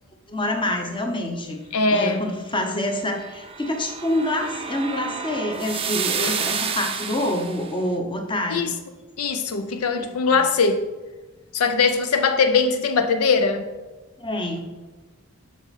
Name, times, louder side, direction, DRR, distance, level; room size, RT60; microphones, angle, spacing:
voice 1, 0.3-1.6 1.9-8.7 10.0-10.4 14.2-14.6, left 1 dB, 25° left, 4 dB, 0.9 m, -27 dB
voice 2, 1.7-2.2 6.2-6.4 8.5-8.7 9.2-10.8 11.5-13.6, left 4 dB, 75° left, 8 dB, 0.6 m, -21 dB
sound 1, 3.1-7.7, right 6 dB, 25° right, 0.5 m, -30 dB
7.5 x 6.0 x 4.1 m, 1.2 s
head